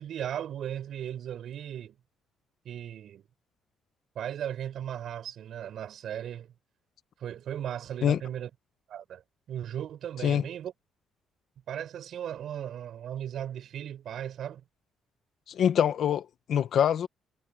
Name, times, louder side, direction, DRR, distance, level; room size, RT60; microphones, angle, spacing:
voice 1, 0.0-1.9 2.6-3.2 4.1-6.5 7.2-8.5 8.9-9.2 9.5-10.7 11.7-14.6, right 10 dB, 55° right, 5.9 m, -36 dB
voice 2, 15.5-17.1, left 9 dB, 55° left, 1.3 m, -25 dB
cardioid pair, 145°, 0 cm